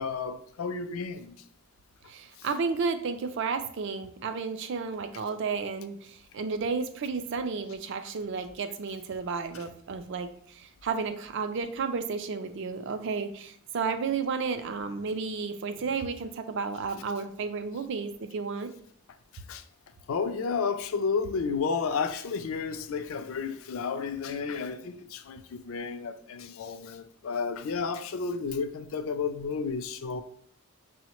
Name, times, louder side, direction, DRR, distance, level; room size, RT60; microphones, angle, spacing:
voice 1, 0.0-1.4 9.5-9.6 19.5-19.6 20.1-30.2, left 5 dB, 70° left, 0.4 m, -32 dB
voice 2, 2.1-18.7, right 5 dB, 55° right, 0.4 m, -32 dB
5.5 x 2.1 x 2.9 m
head